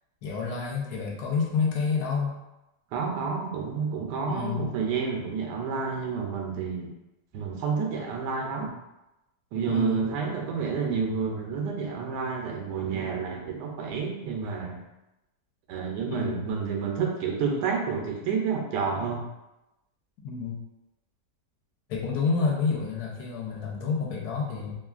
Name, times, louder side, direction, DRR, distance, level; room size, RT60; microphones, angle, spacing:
voice 1, 0.2-2.4 4.3-4.7 9.7-10.1 16.1-16.4 20.2-20.6 21.9-24.7, left 5 dB, 70° left, -2 dB, 1.2 m, -29 dB
voice 2, 2.9-6.9 7.3-8.8 9.5-14.8 15.7-19.2, right 5 dB, 85° right, 1 dB, 1.2 m, -29 dB
3.0 x 2.4 x 2.3 m, 0.95 s
omnidirectional pair, 1.8 m